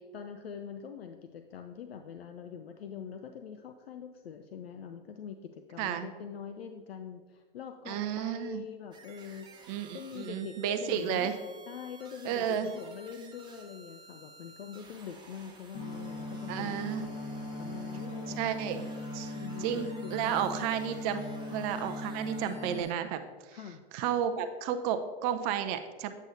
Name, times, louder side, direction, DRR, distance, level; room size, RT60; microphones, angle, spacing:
voice 1, 0.1-9.6 9.9-11.3 11.7-17.3 17.6-18.7 19.3-20.4 23.5-23.8, left 7 dB, 75° left, 7 dB, 0.6 m, -44 dB
voice 2, 7.9-8.6 9.7-11.3 12.2-12.7 16.5-17.0 18.4-19.3 19.6-21.2 21.5-23.2 23.5-23.6 23.9-26.1, right 9 dB, 40° right, 9 dB, 0.6 m, -32 dB
sound 1, 8.9-22.9, right 3 dB, 15° right, 1.0 m, -54 dB
sound 2, 15.7-22.8, left 1 dB, 25° left, 1.4 m, -39 dB
8.3 x 7.8 x 2.7 m, 1.4 s
figure-of-eight pair, 100°, 31 cm